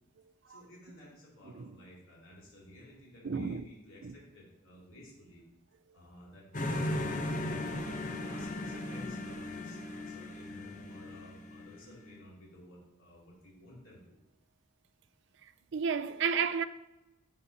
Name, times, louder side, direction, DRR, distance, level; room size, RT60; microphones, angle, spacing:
voice 1, 0.5-5.4 5.9-7.2 7.8-14.2, left 1 dB, 75° left, 2.6 m, -54 dB
voice 2, 3.2-3.6 4.0-4.1 15.7-16.6, right 6 dB, 55° right, 0.4 m, -31 dB
sound 1, 6.5-12.2, left 1 dB, 35° left, 0.6 m, -37 dB
11.5 x 5.4 x 2.8 m
head